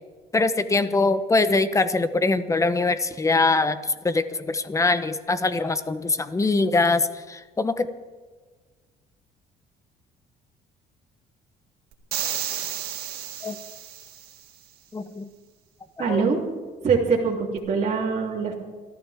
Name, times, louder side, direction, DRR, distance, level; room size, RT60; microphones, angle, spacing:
voice 1, 0.3-7.9 13.4-13.6 14.9-15.3 16.0-16.3, left 3 dB, 20° left, 12 dB, 1.0 m, -23 dB
sound 1, 12.1-14.4, right 10 dB, 70° right, 2.3 m, -32 dB
voice 2, 16.0-16.4 16.8-18.5, right 5 dB, 40° right, -5 dB, 3.2 m, -23 dB
28.5 x 14.0 x 3.6 m, 1.4 s
cardioid pair, 110°, 17 cm